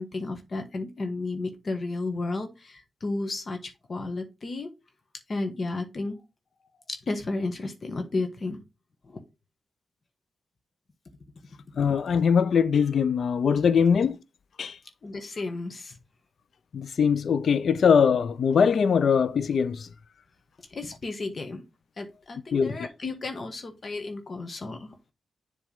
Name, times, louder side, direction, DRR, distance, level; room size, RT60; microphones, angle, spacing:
voice 1, 0.0-4.7 5.3-6.2 6.9-8.6 9.0-9.2 15.0-16.0 20.7-21.6 22.0-24.9, left 3 dB, 50° left, 1.3 m, -33 dB
voice 2, 11.8-14.2 14.6-14.8 16.7-19.9 22.5-22.7, left 6 dB, 70° left, 0.5 m, -22 dB
7.3 x 3.4 x 5.3 m
cardioid pair, 75°, 0 cm